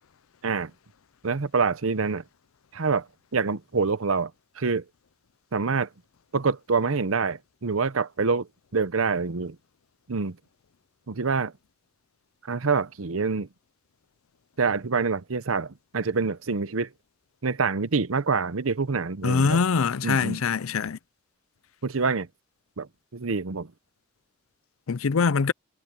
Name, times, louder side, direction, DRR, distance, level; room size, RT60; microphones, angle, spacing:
voice 1, 1.2-2.2 2.7-3.1 3.3-4.3 4.6-4.8 5.5-5.9 6.3-9.6 10.1-10.4 11.1-11.5 12.4-13.5 14.6-16.9 17.4-19.6 20.0-20.4 21.8-22.3 22.8-23.7, right 4 dB, 80° right, 0.8 m, -26 dB
voice 2, 19.2-21.0 24.9-25.5, left 5 dB, 90° left, 0.6 m, -23 dB
head